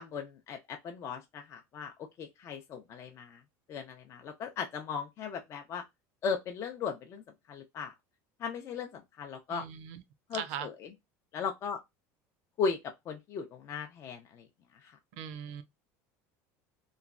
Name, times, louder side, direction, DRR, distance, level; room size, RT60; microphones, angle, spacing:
voice 1, 0.0-1.9 2.2-3.4 3.7-5.8 6.2-7.2 7.5-7.9 8.4-9.6 10.3-10.7 11.3-11.8 12.6-12.8 13.1-14.2, left 6 dB, 35° left, 0.5 m, -37 dB
voice 2, 9.5-10.0 10.3-10.7 15.1-15.6, right 9 dB, 75° right, 0.5 m, -39 dB
3.0 x 2.2 x 2.4 m
supercardioid pair, 140°, 8 cm